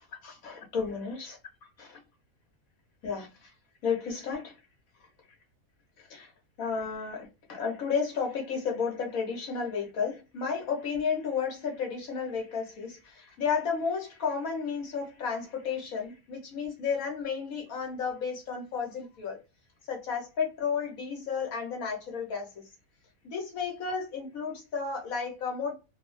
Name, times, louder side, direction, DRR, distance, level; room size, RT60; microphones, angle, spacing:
voice 1, 0.2-1.4 1.8-2.0 3.0-3.5 3.8-4.5 6.1-6.3 6.6-19.4 19.9-22.7 23.2-25.7, left 6 dB, 75° left, 1.5 m, -32 dB
3.0 x 2.1 x 3.1 m
omnidirectional pair, 1.5 m